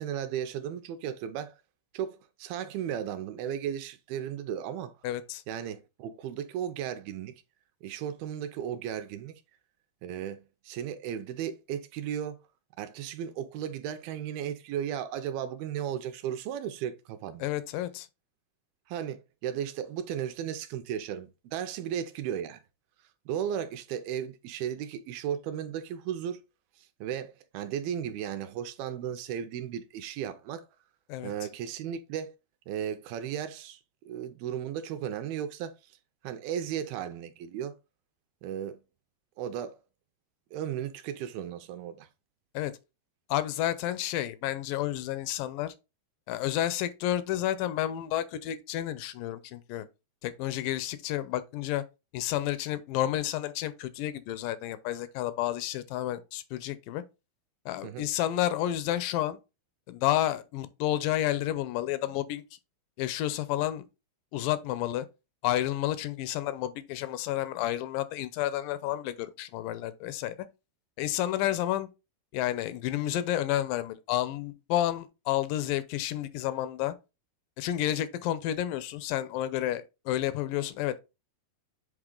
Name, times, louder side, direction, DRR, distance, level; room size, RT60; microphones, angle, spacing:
voice 1, 0.0-1.6 1.9-4.9 5.5-7.3 7.8-9.4 10.0-12.4 12.8-17.5 18.9-22.6 23.3-26.4 26.8-30.7 31.2-32.3 32.7-33.8 34.1-35.7 36.2-37.8 38.4-38.8 39.4-39.8 40.5-42.1 57.8-58.1, right 9 dB, 80° right, 2.3 m, -35 dB
voice 2, 5.0-5.4 17.4-18.1 31.1-31.3 42.5-42.7 43.3-45.7 46.3-49.9 50.2-51.8 52.1-57.0 57.7-59.4 59.9-62.4 63.0-63.9 64.3-65.1 65.4-70.3 71.0-71.9 72.3-76.9 77.6-81.0, left 13 dB, 85° left, 2.0 m, -30 dB
8.0 x 3.7 x 3.8 m
omnidirectional pair, 4.6 m